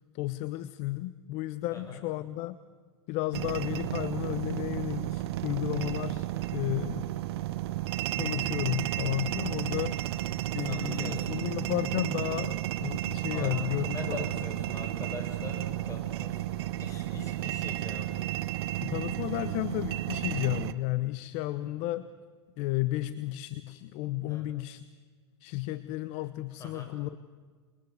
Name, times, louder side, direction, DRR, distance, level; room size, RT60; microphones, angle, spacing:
voice 1, 0.1-2.6 3.1-7.1 8.1-14.3 18.8-22.1 22.6-24.8 25.4-27.2, left 16 dB, 45° left, 15 dB, 1.0 m, -33 dB
voice 2, 1.7-2.1 10.4-11.4 13.3-13.6 13.8-18.3 21.6-21.7 24.2-24.4 26.6-26.9, left 4 dB, 20° left, 4 dB, 7.1 m, -42 dB
sound 1, 3.3-20.7, right 15 dB, 60° right, 1.2 m, -33 dB
28.0 x 22.5 x 8.0 m, 1.5 s
hypercardioid pair, 110°, 15 cm